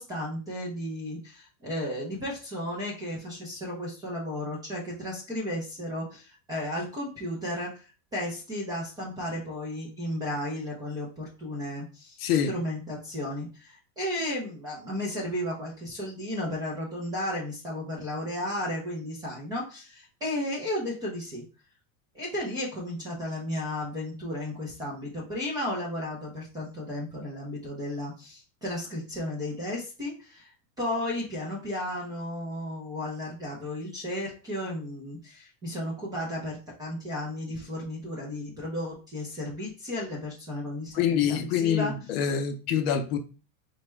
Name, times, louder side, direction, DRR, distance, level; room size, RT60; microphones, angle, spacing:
voice 1, 0.0-7.8 8.1-12.2 12.4-21.4 22.1-30.5 30.8-41.9, left 1 dB, 10° right, 0.4 m, -34 dB
voice 2, 12.2-12.5 40.9-43.2, left 8 dB, 50° left, 0.5 m, -25 dB
4.2 x 2.3 x 3.0 m
supercardioid pair, 160°, 41 cm